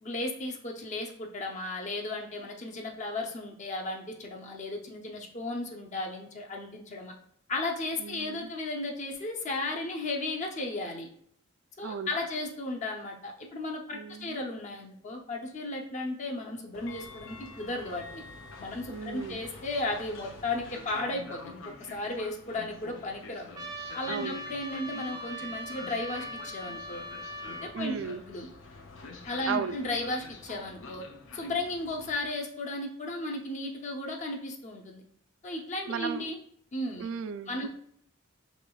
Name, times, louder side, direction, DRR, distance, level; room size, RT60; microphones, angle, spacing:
voice 1, 0.0-7.1 7.5-11.1 11.8-18.2 18.6-23.5 23.9-27.0 27.4-28.0 28.3-28.5 29.3-31.0 31.3-35.0 35.4-36.4 36.7-37.1 37.5-37.7, left 2 dB, 40° left, 1 dB, 0.6 m, -35 dB
voice 2, 8.0-8.5 11.8-12.2 13.9-14.4 18.9-19.4 24.1-24.4 27.7-28.2 29.5-29.8 35.9-36.3 37.0-37.7, right 6 dB, 75° right, 11 dB, 0.3 m, -35 dB
Train, 16.7-32.2, left 3 dB, 90° left, 0.6 m, -47 dB
Trumpet, 23.5-27.7, equal, 20° right, 0.5 m, -40 dB
5.0 x 3.0 x 2.3 m, 0.66 s
head